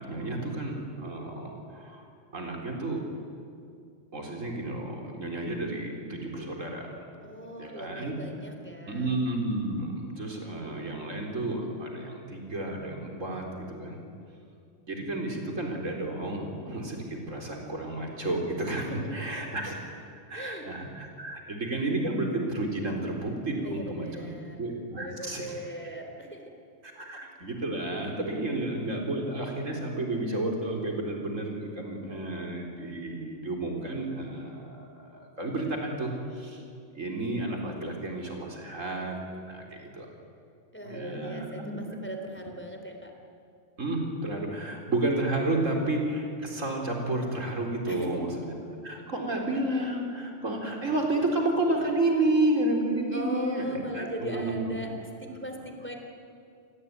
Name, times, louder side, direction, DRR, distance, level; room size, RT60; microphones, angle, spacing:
voice 1, 0.0-2.0 2.3-3.0 4.1-6.8 7.6-8.1 8.9-14.0 14.9-19.9 20.3-24.3 24.6-25.6 27.0-36.6 36.9-39.2 39.5-40.1 40.9-41.8 43.8-48.5 48.8-54.7, right 2 dB, 90° right, 1 dB, 4.5 m, -31 dB
voice 2, 7.2-9.1 18.8-19.5 20.3-20.7 23.6-24.6 25.0-26.5 34.2-34.3 40.7-43.1 47.9-48.2 53.1-54.9 55.2-55.9, right 1 dB, 10° left, 3 dB, 3.4 m, -39 dB
28.5 x 20.0 x 9.6 m, 2.4 s
omnidirectional pair, 1.3 m